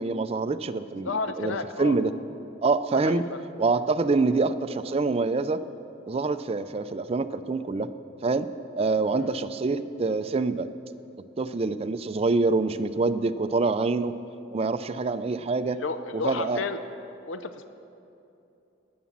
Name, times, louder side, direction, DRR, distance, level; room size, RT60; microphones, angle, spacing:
voice 1, 0.0-2.1 2.6-3.2 3.6-5.6 6.1-7.9 8.2-8.5 8.8-10.7 11.4-14.1 14.5-15.8 16.1-16.6, right 3 dB, 30° right, 11 dB, 0.4 m, -26 dB
voice 2, 1.0-2.0 3.0-3.4 9.2-9.3 15.7-16.8 17.3-17.7, left 4 dB, 70° left, 10 dB, 0.6 m, -32 dB
11.0 x 9.4 x 7.3 m, 2.8 s
head